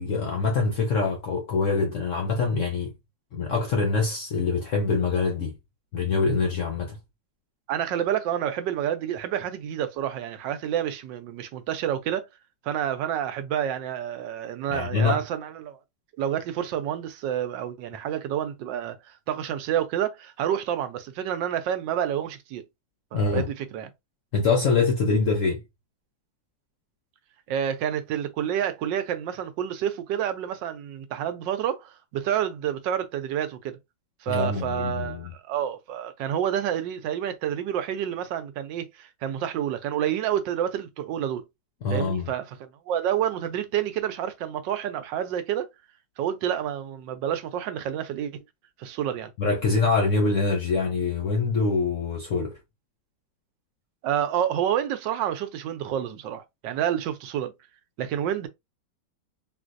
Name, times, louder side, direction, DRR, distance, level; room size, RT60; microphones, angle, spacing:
voice 1, 0.0-2.9 3.3-5.5 5.9-7.0 14.7-15.2 23.1-23.5 24.3-25.6 34.3-35.3 41.8-42.3 49.4-52.6, left 4 dB, 65° left, 0.8 m, -24 dB
voice 2, 7.7-12.3 12.6-15.8 16.2-22.6 23.1-23.9 27.5-33.8 34.2-41.4 41.9-45.7 46.2-48.4 48.8-49.3 54.0-57.5 58.0-58.5, right 10 dB, 75° right, 1.2 m, -29 dB
3.8 x 2.5 x 2.5 m
omnidirectional pair, 2.0 m